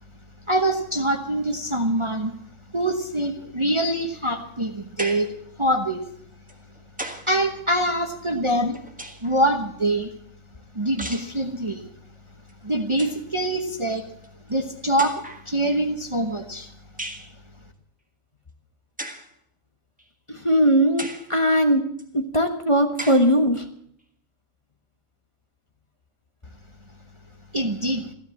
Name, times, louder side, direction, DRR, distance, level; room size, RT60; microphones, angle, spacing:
voice 1, 0.5-2.3 2.7-6.0 7.3-8.8 9.2-10.1 10.7-11.9 12.6-14.1 14.5-16.7 27.5-28.1, right 1 dB, 25° right, 5 dB, 1.0 m, -24 dB
sound 1, 5.0-5.4 6.5-7.4 8.5-9.4 11.0-11.4 12.5-12.6 12.9-13.2 14.2-14.3 15.0-15.5 17.0-17.3 19.0-19.3 20.0-20.1 21.0-21.3 22.0-22.1 23.0-23.3, right 1 dB, 5° right, 1.4 m, -36 dB
voice 2, 20.3-21.8 22.1-23.6, equal, 25° left, 5 dB, 1.3 m, -20 dB
15.0 x 13.0 x 7.1 m, 0.68 s
omnidirectional pair, 1.4 m